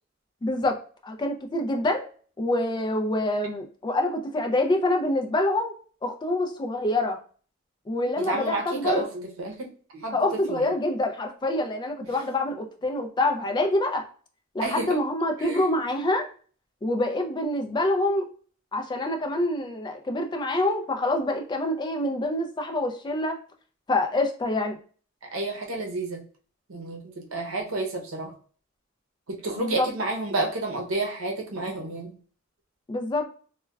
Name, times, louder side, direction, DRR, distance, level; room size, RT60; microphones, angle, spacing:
voice 1, 0.4-2.1 2.4-5.7 6.0-7.2 7.9-9.0 10.1-14.1 14.5-16.3 16.8-18.3 18.7-23.4 23.9-24.8 29.6-29.9 32.9-33.3, left 1 dB, 20° left, 4 dB, 0.3 m, -26 dB
voice 2, 8.2-10.7 12.0-12.2 14.6-15.0 15.4-15.7 25.3-26.2 26.7-28.3 29.3-32.2, right 2 dB, 90° right, 2 dB, 0.7 m, -30 dB
3.3 x 2.1 x 2.2 m, 0.43 s
head